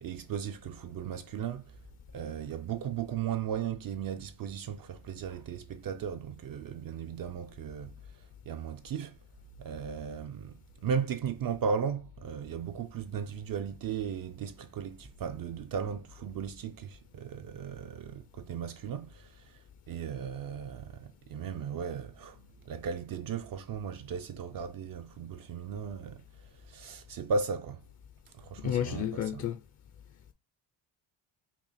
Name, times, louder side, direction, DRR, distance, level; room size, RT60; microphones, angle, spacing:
voice 1, 0.0-1.8 2.1-9.2 9.6-10.5 10.8-27.8 28.3-29.4, right 6 dB, 50° right, 0.4 m, -36 dB
voice 2, 28.6-29.6, left 10 dB, 35° left, 0.4 m, -31 dB
5.9 x 2.1 x 4.1 m
cardioid pair, 120°, 48 cm